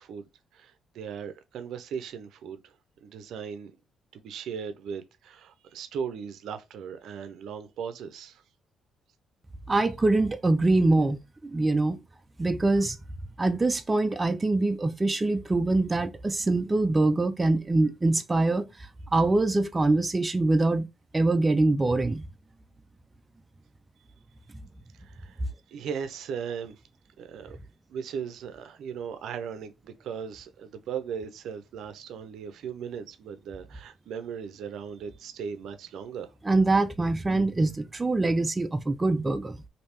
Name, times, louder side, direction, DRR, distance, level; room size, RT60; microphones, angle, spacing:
voice 1, 0.0-2.7 3.0-3.7 4.1-8.4 24.9-25.4 25.7-26.8 27.2-27.6 27.9-36.3, right 7 dB, 75° right, 0.5 m, -38 dB
voice 2, 9.7-12.0 12.4-13.0 13.4-20.9 21.1-22.2 36.5-39.6, right 2 dB, 20° right, 0.4 m, -24 dB
3.2 x 2.7 x 2.9 m
cardioid pair, 90°, 0 cm